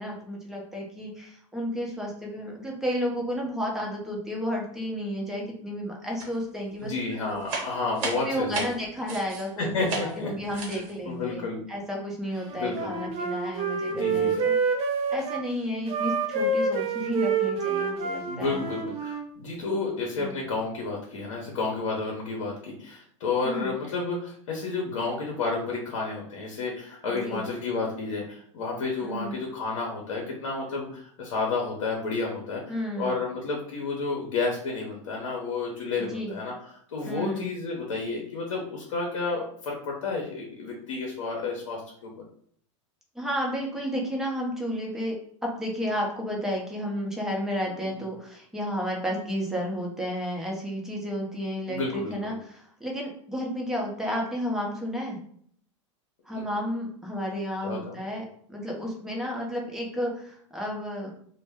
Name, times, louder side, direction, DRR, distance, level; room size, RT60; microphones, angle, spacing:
voice 1, 0.0-6.9 7.3-7.4 8.0-14.5 15.1-18.7 20.2-20.4 23.4-23.7 27.1-27.4 29.0-29.4 32.7-33.2 36.0-36.4 37.1-37.5 43.1-55.2 56.2-61.1, equal, 5° right, -2 dB, 0.7 m, -32 dB
sound 1, 6.2-6.6 6.8-9.5 9.8-10.2 10.5-10.9, right 3 dB, 55° right, 0.9 m, -34 dB
voice 2, 6.8-8.7 9.6-10.6 11.1-11.6 12.5-12.9 13.9-14.4 18.3-32.6 33.0-36.5 36.9-42.1 51.7-52.3 56.3-56.4 57.6-58.0, left 3 dB, 80° left, -1 dB, 0.7 m, -31 dB
Wind instrument woodwind instrument, 12.5-15.4 15.9-19.3, right 4 dB, 35° right, 0.5 m, -27 dB
2.1 x 2.0 x 3.4 m, 0.63 s
hypercardioid pair, 115°, 16 cm